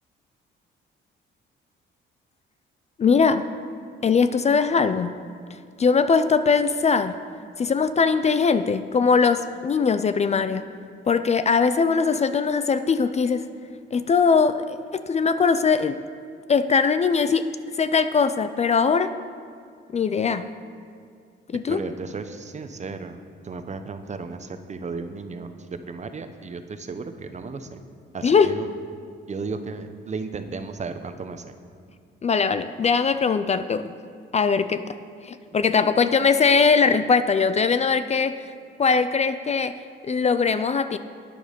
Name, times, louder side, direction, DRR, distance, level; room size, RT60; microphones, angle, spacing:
voice 1, 3.0-3.4 4.0-5.2 5.8-7.1 7.6-10.6 11.1-13.5 13.9-16.0 16.5-17.5 17.8-19.1 19.9-20.5 21.5-21.8 28.2-28.5 32.2-33.9 34.3-34.9 35.3-38.4 38.8-39.7 40.1-41.0, left 5 dB, 35° left, 12 dB, 0.5 m, -21 dB
voice 2, 21.7-27.8 28.1-28.7 29.3-31.5, right 4 dB, 35° right, 9 dB, 0.9 m, -34 dB
11.5 x 9.4 x 5.2 m, 2.3 s
cardioid pair, 90°, 20 cm